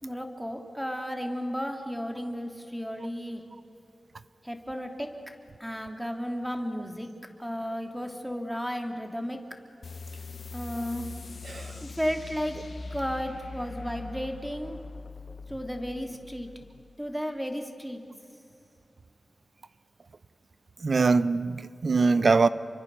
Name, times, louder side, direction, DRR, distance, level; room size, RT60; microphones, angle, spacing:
voice 1, 0.0-3.4 4.4-5.1 5.6-7.1 7.4-9.4 10.5-11.1 11.8-12.6 12.9-14.8 15.5-16.5 17.0-18.0, equal, ahead, 2.7 m, -33 dB
sound 1, 9.8-16.9, left 4 dB, 60° left, 0.8 m, -42 dB
voice 2, 11.5-11.8 20.8-22.5, right 4 dB, 55° right, 0.7 m, -23 dB
30.0 x 24.0 x 6.9 m
wide cardioid pair, 100°, 0 cm